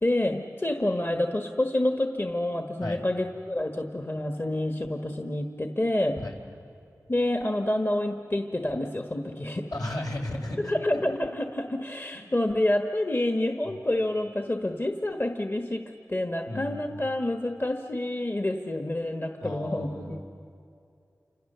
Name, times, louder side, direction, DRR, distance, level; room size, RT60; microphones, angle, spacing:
voice 1, 0.0-6.2 7.1-9.6 10.7-15.8 16.1-20.2, left 1 dB, 35° left, 5 dB, 1.4 m, -28 dB
voice 2, 9.7-11.0 12.1-12.2 13.6-13.8 16.5-17.1 19.4-20.2, left 1 dB, 75° left, 0 dB, 4.8 m, -35 dB
29.0 x 26.0 x 6.8 m, 2.5 s
wide cardioid pair, 50°, 6 cm